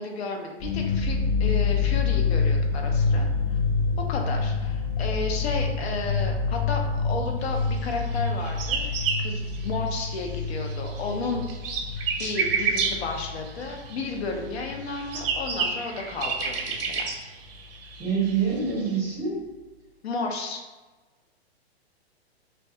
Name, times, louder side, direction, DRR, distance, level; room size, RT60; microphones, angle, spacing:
voice 1, 0.0-3.6 4.0-8.9 9.2-11.5 12.2-17.1 20.0-20.6, left 3 dB, 70° left, 2 dB, 0.6 m, -33 dB
sound 1, 0.6-15.7 15.9-17.1 17.4-17.5 17.9-18.5, left 4 dB, 35° left, 0.7 m, -27 dB
sound 2, 8.1-10.3 10.6-14.2 14.7-19.0, right 5 dB, 60° right, 0.5 m, -30 dB
voice 2, 18.0-19.4, right 6 dB, 10° right, -9 dB, 0.6 m, -26 dB
2.3 x 2.2 x 2.7 m, 1.2 s
hypercardioid pair, 150°, 33 cm